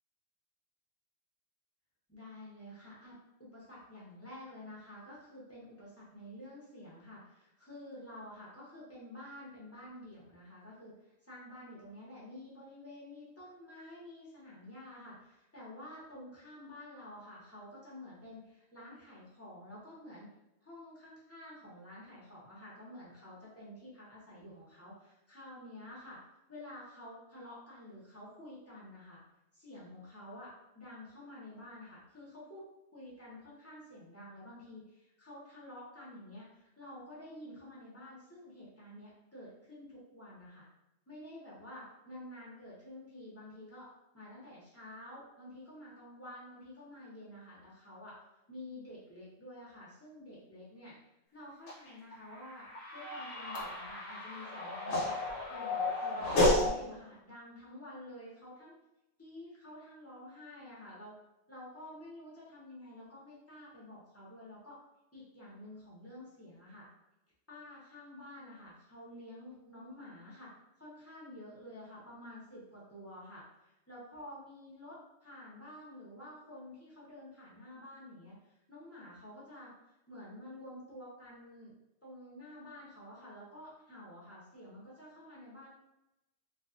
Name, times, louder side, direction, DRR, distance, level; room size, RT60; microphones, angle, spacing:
voice 1, 2.1-20.3 20.6-26.2 26.5-29.2 29.5-32.6 32.9-40.7 41.1-43.9 44.1-48.2 48.5-51.0 51.3-58.7 59.2-61.2 61.5-64.8 65.1-66.9 67.5-70.5 70.8-73.4 73.9-78.4 78.7-79.7 80.1-81.7 82.0-85.7, left 1 dB, 15° left, -8 dB, 0.5 m, -50 dB
sound 1, 51.7-56.7, left 2 dB, 75° left, 1.0 m, -32 dB
2.4 x 2.3 x 2.5 m, 0.92 s
omnidirectional pair, 1.4 m